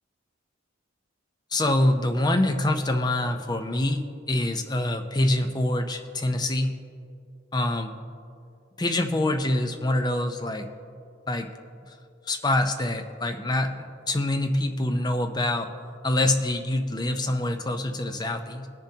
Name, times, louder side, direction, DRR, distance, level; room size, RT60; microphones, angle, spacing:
voice 1, 1.5-6.7 7.5-7.9 8.8-10.7 11.3-11.5 12.3-15.7 16.0-18.7, left 1 dB, 20° left, 6 dB, 0.6 m, -25 dB
21.0 x 7.1 x 2.8 m, 2.5 s
head